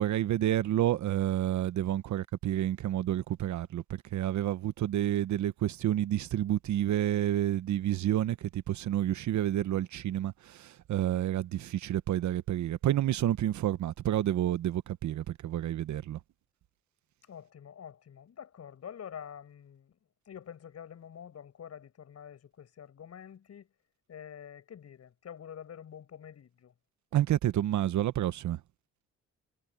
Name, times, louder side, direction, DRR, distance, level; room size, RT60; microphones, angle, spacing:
voice 1, 0.0-16.2 27.1-28.6, right 12 dB, 70° right, 1.1 m, -29 dB
voice 2, 17.3-19.9 20.3-23.7 24.1-26.7, left 8 dB, 55° left, 7.8 m, -47 dB
cardioid pair, 90°, 30 cm